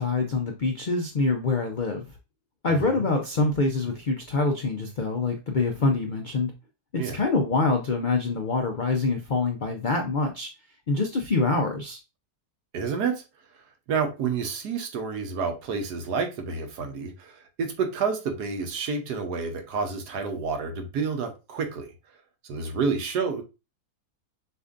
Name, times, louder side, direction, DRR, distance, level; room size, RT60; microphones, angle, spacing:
voice 1, 0.0-2.1 2.6-6.5 6.9-10.5 10.9-12.0, left 3 dB, 75° left, 0.4 m, -25 dB
voice 2, 2.7-3.0 7.0-7.2 12.7-13.2 13.9-21.9 22.5-23.4, right 5 dB, 80° right, 1.5 m, -29 dB
6.7 x 2.6 x 2.4 m
omnidirectional pair, 1.7 m